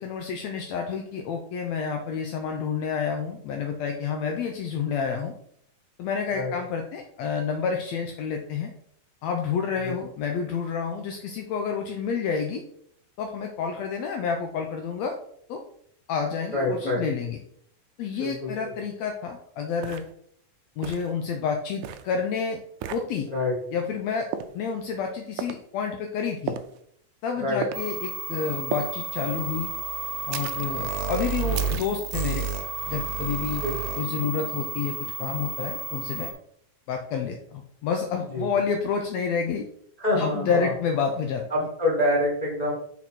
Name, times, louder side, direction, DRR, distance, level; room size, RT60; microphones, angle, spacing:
voice 1, 0.0-5.3 6.0-8.7 9.2-12.6 13.2-15.1 15.5-15.6 16.1-17.4 18.0-20.0 20.8-22.6 22.9-23.3 23.7-24.3 24.5-26.6 27.2-29.7 30.3-32.5 32.9-33.6 34.0-36.3 36.9-39.7 40.2-41.4, left 6 dB, 80° left, 3 dB, 1.6 m, -29 dB
voice 2, 16.5-17.0 18.2-18.5 23.3-23.5 27.4-27.6 33.6-33.8 38.3-38.5 40.0-40.7 41.5-42.7, left 1 dB, 25° left, -3 dB, 1.0 m, -26 dB
sound 1, 19.1-19.2 19.8-20.1 20.8-21.1 21.8-22.1 22.8-23.1 24.3-24.6 25.4-25.6 26.5-26.8 27.6-27.8 28.7-28.9 30.3-30.7 31.6-32.0, right 8 dB, 85° right, 2.1 m, -34 dB
sound 2, 27.7-36.3, right 5 dB, 65° right, 1.8 m, -31 dB
6.2 x 4.1 x 4.3 m, 0.67 s
omnidirectional pair, 3.6 m